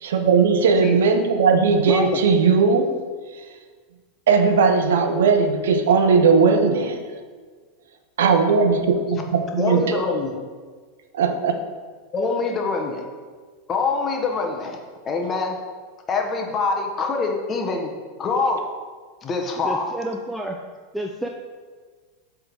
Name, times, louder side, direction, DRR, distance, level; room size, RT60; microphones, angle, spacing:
voice 1, 0.0-2.9 4.3-7.1 8.2-10.1 11.1-11.5, right 5 dB, 85° right, 7 dB, 0.7 m, -18 dB
voice 2, 1.9-2.2 9.5-10.3 12.1-13.0 13.7-14.8 15.0-15.6 16.1-18.6 19.2-19.9, left 4 dB, 30° left, 2 dB, 1.1 m, -25 dB
voice 3, 19.6-20.6 20.9-21.3, right 1 dB, 5° right, 1 dB, 0.5 m, -30 dB
7.9 x 3.7 x 4.7 m, 1.5 s
hypercardioid pair, 115°, 0 cm